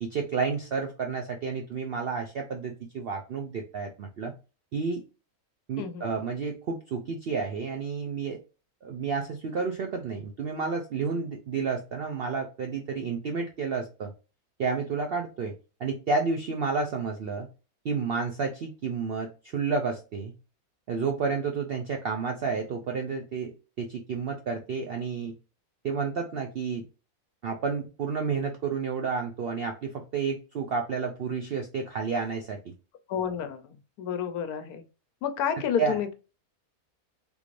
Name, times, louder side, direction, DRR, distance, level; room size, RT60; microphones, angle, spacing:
voice 1, 0.0-4.3 4.7-5.0 5.7-8.4 8.8-14.1 14.6-15.5 15.8-17.5 17.8-20.3 20.9-25.3 25.8-26.8 27.4-32.7 35.8-36.0, right 5 dB, 75° right, 3 dB, 0.5 m, -31 dB
voice 2, 5.8-6.1 33.1-33.6 34.0-34.8 35.2-36.1, left 8 dB, 90° left, 9 dB, 1.1 m, -30 dB
3.6 x 2.5 x 3.1 m, 0.32 s
omnidirectional pair, 1.6 m